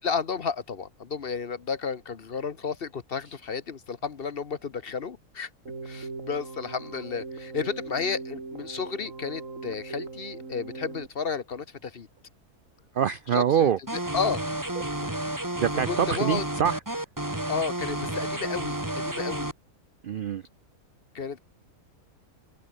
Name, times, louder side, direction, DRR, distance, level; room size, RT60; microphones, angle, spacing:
voice 1, 0.0-5.5 5.8-12.1 13.3-14.4 15.9-16.4 17.5-19.5 21.1-21.4, left 5 dB, 45° left, 1.1 m, -32 dB
Keyboard (musical), 5.7-11.1, right 3 dB, 60° right, 3.4 m, -39 dB
voice 2, 12.9-13.8 15.6-16.8 20.0-20.4, right 8 dB, 85° right, 0.4 m, -24 dB
sound 1, 13.9-19.5, right 1 dB, 10° right, 2.4 m, -31 dB
open air
omnidirectional pair, 1.5 m